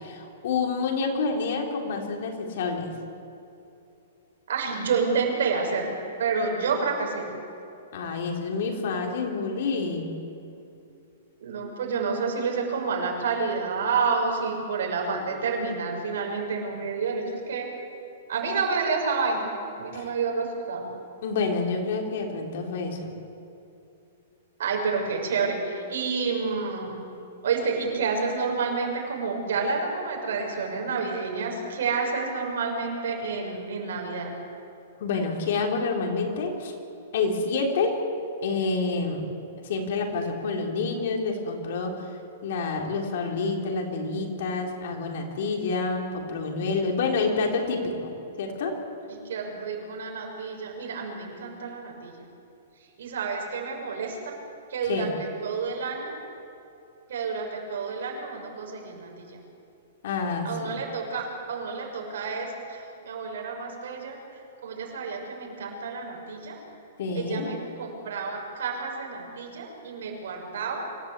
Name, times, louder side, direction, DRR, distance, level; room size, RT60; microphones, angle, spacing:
voice 1, 0.0-2.9 7.9-10.2 19.9-20.1 21.2-23.1 35.0-36.7 37.1-38.0 38.4-39.3 39.6-42.1 42.4-48.7 54.9-55.1 60.0-60.8 67.0-67.5, left 4 dB, 55° left, 2 dB, 3.8 m, -28 dB
voice 2, 4.5-5.9 6.2-7.3 11.4-17.7 18.3-20.9 24.6-27.0 27.4-34.3 49.1-52.1 53.0-54.4 54.7-56.2 57.1-59.3 60.4-64.2 64.6-66.6 67.1-70.9, right 4 dB, 70° right, 1 dB, 6.2 m, -29 dB
25.5 x 15.5 x 8.4 m, 2.7 s
hypercardioid pair, 170°, 0 cm